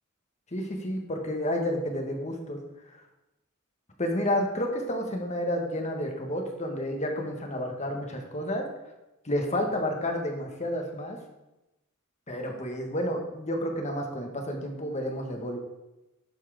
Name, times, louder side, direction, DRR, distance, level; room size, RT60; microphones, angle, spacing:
voice 1, 0.5-2.6 4.0-8.7 9.2-11.2 12.3-15.6, left 1 dB, 30° left, 3 dB, 1.4 m, -30 dB
12.0 x 4.5 x 4.9 m, 0.98 s
head